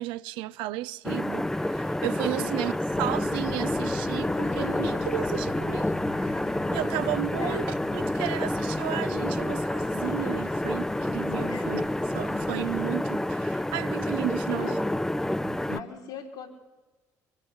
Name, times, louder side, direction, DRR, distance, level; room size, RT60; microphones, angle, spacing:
voice 1, 0.0-2.7 3.0-7.7 7.9-11.8 12.1-14.7 15.5-15.7, right 15 dB, 75° right, 0.6 m, -33 dB
sound 1, 1.0-15.8, left 1 dB, 5° left, 0.6 m, -29 dB
voice 2, 2.4-3.0 7.4-7.8 11.5-12.0 14.5-14.8 15.7-16.5, left 5 dB, 75° left, 3.6 m, -40 dB
sound 2, 2.9-12.9, left 5 dB, 30° left, 0.9 m, -39 dB
23.0 x 12.5 x 9.7 m
hypercardioid pair, 55°, 8 cm